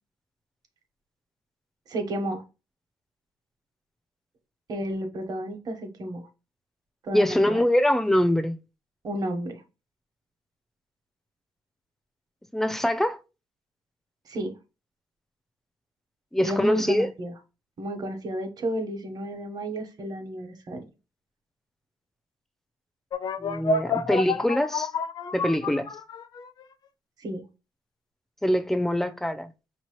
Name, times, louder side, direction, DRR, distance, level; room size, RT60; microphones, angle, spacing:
voice 1, 1.9-2.4 4.7-6.3 7.0-7.7 9.0-9.6 14.3-14.5 16.4-17.3 17.8-20.9 27.2-27.4, right 1 dB, 50° right, 1.2 m, -32 dB
voice 2, 7.1-8.6 12.5-13.2 16.3-17.1 23.4-24.9 25.3-25.9 28.4-29.5, left 1 dB, 5° left, 0.5 m, -23 dB
sound 1, 23.1-26.6, left 3 dB, 55° left, 0.7 m, -29 dB
5.3 x 3.0 x 3.1 m
cardioid pair, 120°, 9 cm